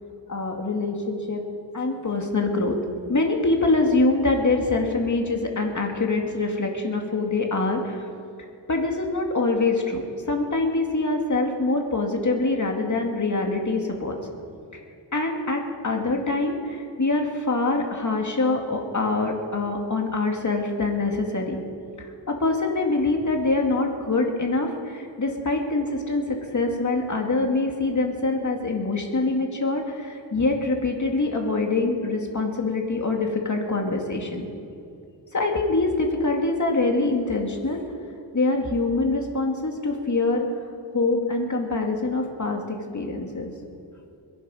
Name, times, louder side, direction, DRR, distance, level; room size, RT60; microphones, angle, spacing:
voice 1, 0.3-1.4 1.7-2.7 3.1-8.0 8.7-10.0 10.3-14.2 15.1-21.6 22.3-34.5 35.3-37.8 38.3-40.5 40.9-43.5, left 3 dB, 40° left, 2 dB, 2.2 m, -24 dB
22.0 x 10.0 x 5.6 m, 2.6 s
wide cardioid pair, 90°, 43 cm